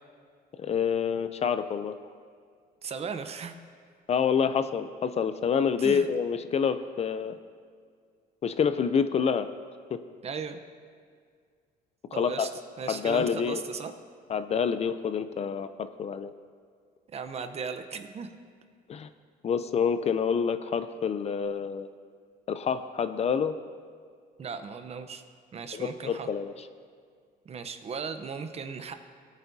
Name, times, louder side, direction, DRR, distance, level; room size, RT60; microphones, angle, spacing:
voice 1, 0.6-2.0 4.1-7.4 8.4-9.5 9.9-10.0 12.1-12.5 12.9-13.6 14.3-16.3 18.9-19.1 19.4-21.9 22.5-23.5 25.7-26.5, left 6 dB, 40° left, 11 dB, 0.5 m, -27 dB
voice 2, 2.8-3.6 5.8-6.1 10.2-10.6 12.1-12.5 12.8-13.9 17.1-18.3 24.4-25.2 25.5-26.3 27.5-28.9, right 5 dB, 40° right, 8 dB, 0.8 m, -36 dB
19.0 x 9.0 x 2.7 m, 2.1 s
cardioid pair, 110°, 17 cm